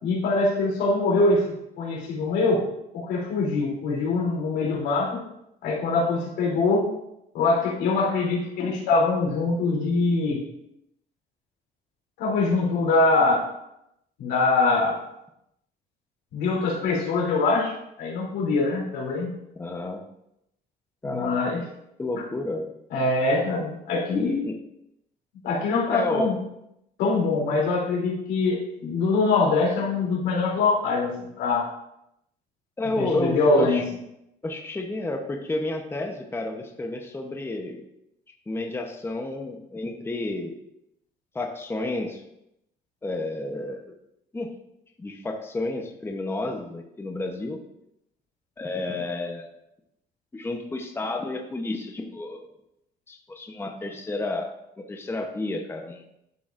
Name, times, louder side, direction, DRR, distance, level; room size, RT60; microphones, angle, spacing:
voice 1, 0.0-2.6 2.9-5.2 5.6-6.9 7.3-10.4 12.2-13.4 14.2-14.9 16.3-17.7 18.0-19.3 21.0-21.6 22.1-22.2 22.9-24.4 25.4-26.3 27.0-31.7 33.0-33.8, left 3 dB, 85° left, -3 dB, 3.1 m, -23 dB
voice 2, 19.6-20.0 21.0-21.7 22.0-22.7 24.4-24.6 25.9-26.3 32.8-33.8 34.4-37.8 38.5-40.6 41.3-42.2 43.0-43.9 44.3-44.5 45.0-47.6 48.6-49.5 50.3-52.5 53.1-56.0, left 2 dB, 15° left, 3 dB, 0.9 m, -31 dB
12.0 x 6.8 x 2.6 m, 0.81 s
cardioid pair, 110°, 17 cm